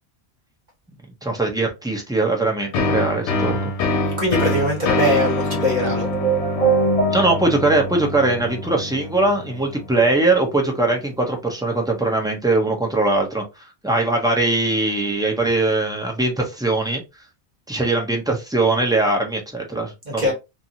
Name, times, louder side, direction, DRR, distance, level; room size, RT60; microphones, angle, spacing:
voice 1, 1.2-3.7 7.1-13.4 13.8-17.0 17.7-20.3, right 2 dB, 5° right, 0.5 m, -21 dB
sound 1, 2.7-10.2, left 2 dB, 80° left, 1.0 m, -25 dB
voice 2, 4.2-6.1 20.1-20.3, equal, 40° right, 1.3 m, -21 dB
sound 2, 5.8-7.9, right 5 dB, 35° left, 1.0 m, -22 dB
2.7 x 2.5 x 2.7 m
omnidirectional pair, 1.2 m